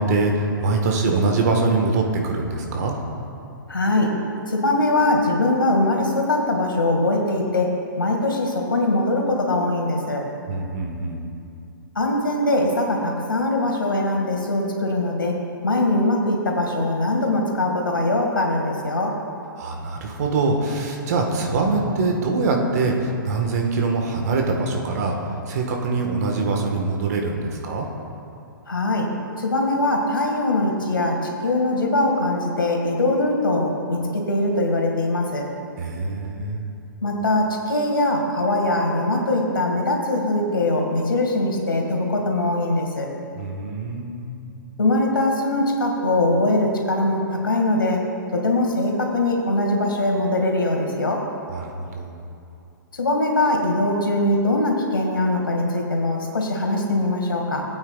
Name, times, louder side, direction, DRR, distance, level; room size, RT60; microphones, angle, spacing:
voice 1, 0.0-2.9 10.5-11.2 19.5-25.2 25.5-27.9 35.8-36.7 43.3-44.3 51.5-52.2, right 3 dB, 45° right, 2 dB, 1.5 m, -23 dB
voice 2, 3.7-4.1 4.5-7.7 8.0-10.2 12.0-15.4 15.6-19.1 28.7-29.1 29.4-35.5 37.0-43.1 44.8-48.0 48.3-51.2 52.9-57.6, left 2 dB, 75° left, 0 dB, 2.1 m, -22 dB
19.0 x 8.7 x 2.4 m, 2.6 s
figure-of-eight pair, 120°, 12 cm